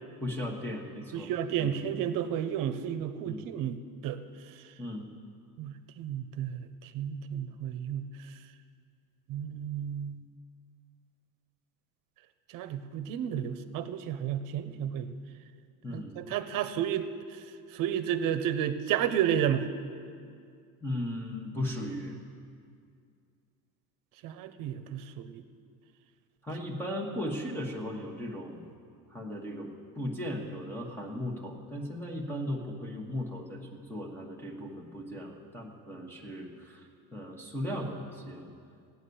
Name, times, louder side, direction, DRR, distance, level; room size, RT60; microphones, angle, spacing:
voice 1, 0.2-1.3 1.6-1.8 3.2-3.5 4.8-5.1 15.8-16.2 20.8-22.2 26.4-28.7 29.1-36.8 37.1-38.5, left 1 dB, 5° left, -1 dB, 1.2 m, -37 dB
voice 2, 1.1-3.8 4.0-4.2 5.6-8.1 9.3-10.2 12.5-15.2 15.9-17.1 17.7-19.7 24.2-25.4, right 9 dB, 55° right, 10 dB, 0.9 m, -32 dB
15.0 x 9.6 x 6.9 m, 2.3 s
cardioid pair, 145°, 39 cm